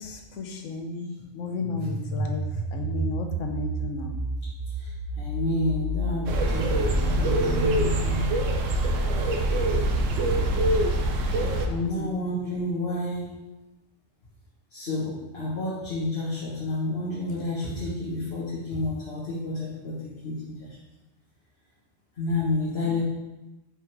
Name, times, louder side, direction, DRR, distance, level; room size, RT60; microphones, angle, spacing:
voice 1, 0.0-2.4 2.7-4.2 9.9-10.7 11.8-12.1, left 4 dB, 75° left, 4 dB, 1.1 m, -34 dB
sound 1, 1.6-10.3, right 1 dB, 35° right, 0.5 m, -32 dB
voice 2, 5.2-8.2 11.7-13.3 14.7-20.7 22.2-23.0, left 2 dB, 55° left, -7 dB, 1.5 m, -30 dB
sound 2, 6.3-11.7, right 1 dB, 80° right, 1.1 m, -24 dB
6.1 x 3.8 x 4.6 m, 1.0 s
omnidirectional pair, 1.3 m